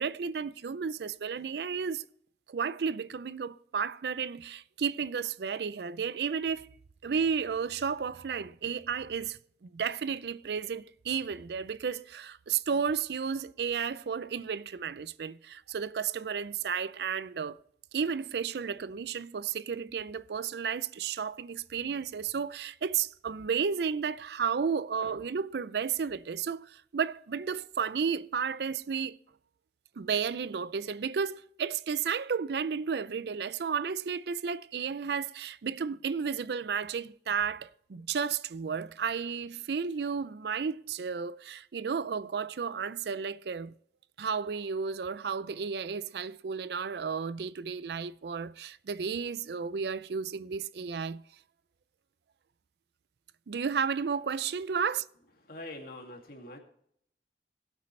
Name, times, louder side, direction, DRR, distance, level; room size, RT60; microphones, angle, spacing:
voice 1, 0.0-2.1 2.5-6.7 7.0-17.6 17.9-29.2 30.0-43.7 44.2-51.2 53.5-55.1, right 6 dB, 65° right, 0.4 m, -33 dB
voice 2, 55.4-56.6, left 1 dB, 55° left, 2.3 m, -44 dB
19.0 x 8.4 x 3.2 m
head